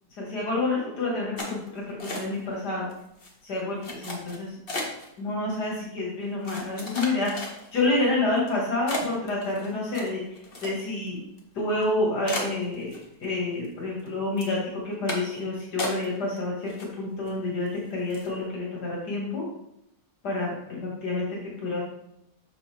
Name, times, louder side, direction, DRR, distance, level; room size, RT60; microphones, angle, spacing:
voice 1, 0.2-2.9 3.4-4.9 5.2-7.3 7.7-11.2 11.5-14.6 14.8-19.4 20.2-21.8, left 2 dB, 80° left, -4 dB, 2.4 m, -29 dB
sound 1, 1.4-2.6 2.9-3.3 3.8-5.1 5.8-5.9 6.4-7.9 8.4-8.5 8.9-11.1 11.4-11.5 11.8-11.9 12.3-13.3 13.6-14.1 14.4-14.6 15.1-15.4 15.8-16.4 16.7-17.3 17.7-17.8 18.1-18.4, left 1 dB, 40° left, 1.4 m, -35 dB
6.9 x 6.7 x 3.4 m, 0.78 s
omnidirectional pair, 1.7 m